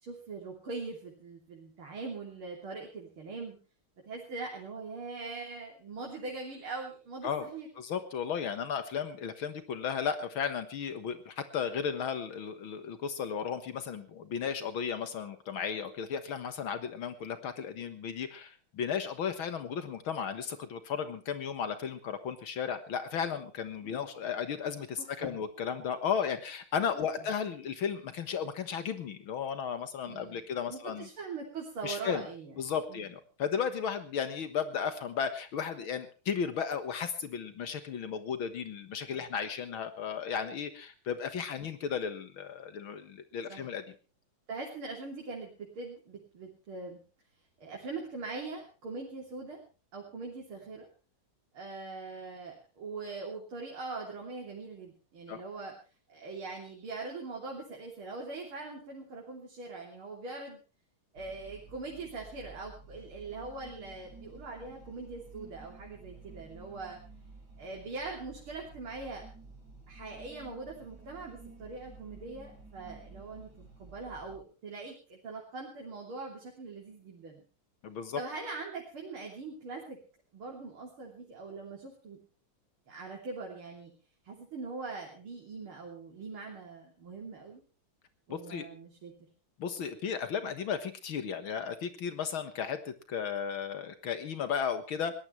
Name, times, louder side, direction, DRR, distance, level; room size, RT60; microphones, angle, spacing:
voice 1, 0.0-3.6 4.1-7.7 23.8-24.1 25.0-25.4 26.9-27.0 30.1-30.4 30.7-33.1 39.1-39.2 41.6-41.7 43.5-43.7 44.5-47.0 47.6-49.6 49.9-50.9 51.5-55.7 56.1-60.6 61.1-67.0 67.6-69.2 69.9-77.4 78.2-80.0 80.3-82.2 82.9-83.9 84.2-87.6 88.3-89.1, right 3 dB, 80° right, -1 dB, 4.0 m, -42 dB
voice 2, 7.8-31.1 31.8-32.3 32.6-43.8 55.3-55.4 77.8-78.2 88.3-88.7 89.6-95.1, left 7 dB, 75° left, 9 dB, 2.2 m, -34 dB
sound 1, 61.2-74.4, right 3 dB, 50° right, 5.0 m, -52 dB
21.5 x 18.0 x 3.2 m, 0.35 s
omnidirectional pair, 2.3 m